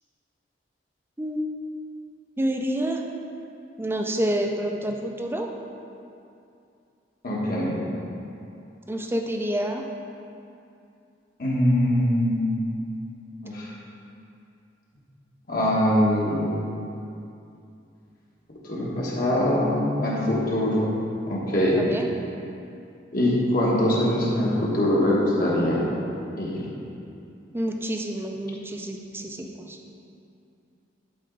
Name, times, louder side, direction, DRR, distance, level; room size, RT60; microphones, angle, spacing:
voice 1, 2.4-3.0 3.8-5.5 8.9-9.8 21.7-22.1 27.5-29.8, right 1 dB, 15° right, 2 dB, 0.5 m, -28 dB
voice 2, 7.2-7.8 11.4-12.8 13.4-13.7 15.5-16.5 18.6-20.9 21.3-21.8 23.1-25.9 26.4-26.6, left 1 dB, 50° left, -5 dB, 1.5 m, -23 dB
11.0 x 4.4 x 3.9 m, 2.6 s
head